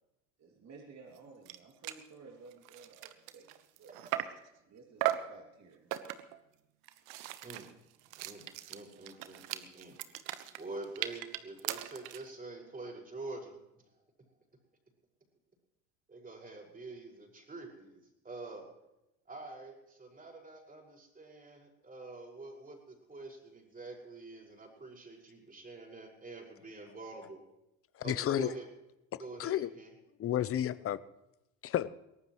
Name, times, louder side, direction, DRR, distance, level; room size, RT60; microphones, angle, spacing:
voice 1, 0.4-4.2 4.6-6.1, right 4 dB, 40° right, 2.7 m, -55 dB
sound 1, 1.2-1.3 1.5-1.6 1.8-2.1 2.5-4.5 5.0-5.4 5.9-6.4 6.8-12.3, right 14 dB, 65° right, 1.2 m, -38 dB
voice 2, 7.4-7.7 8.2-10.0 10.6-13.6 13.9-14.0 16.1-18.0 18.2-18.7 19.3-27.4 28.0-28.7 29.2-29.9 30.6-30.7, right 3 dB, 20° right, 5.7 m, -46 dB
voice 3, 27.9-28.5 29.4-29.7 30.2-31.0 31.6-31.9, left 11 dB, 35° left, 0.8 m, -31 dB
22.5 x 18.0 x 3.2 m
hypercardioid pair, 70°, 40 cm